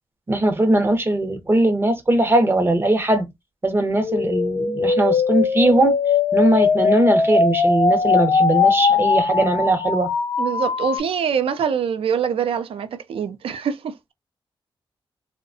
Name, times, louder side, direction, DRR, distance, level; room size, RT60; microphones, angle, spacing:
voice 1, 0.3-3.3 3.6-5.9 6.3-10.1, right 1 dB, 25° right, 0.6 m, -19 dB
sound 1, 4.0-11.0, left 4 dB, 40° left, 0.4 m, -20 dB
voice 2, 10.4-14.1, right 7 dB, 75° right, 0.4 m, -24 dB
2.6 x 2.1 x 2.5 m
wide cardioid pair, 105°, 10 cm